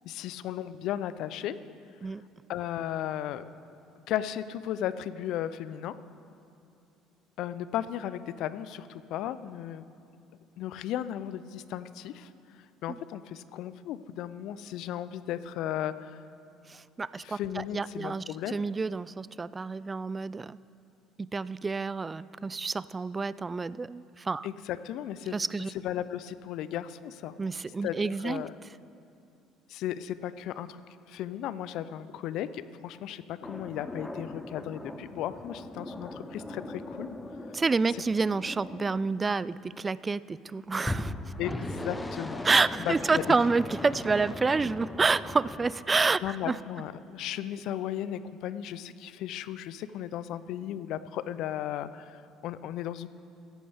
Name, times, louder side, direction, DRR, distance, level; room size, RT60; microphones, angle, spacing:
voice 1, 0.0-1.6 2.5-3.4 4.1-6.0 7.4-9.8 10.6-12.3 12.8-16.2 17.2-18.6 24.4-25.4 25.8-27.4 27.8-28.5 29.7-30.8 31.1-37.2 41.4-42.4 42.9-43.2 46.2-53.1, left 11 dB, 65° left, 15 dB, 0.5 m, -35 dB
voice 2, 16.7-20.6 21.2-24.5 25.3-25.7 27.4-28.4 37.5-41.1 42.4-46.6, right 4 dB, 25° right, 19 dB, 0.3 m, -29 dB
sound 1, 33.4-39.8 40.8-45.7, left 1 dB, 15° left, 0.9 m, -39 dB
16.5 x 13.5 x 3.5 m, 2.6 s
hypercardioid pair, 60°, 0 cm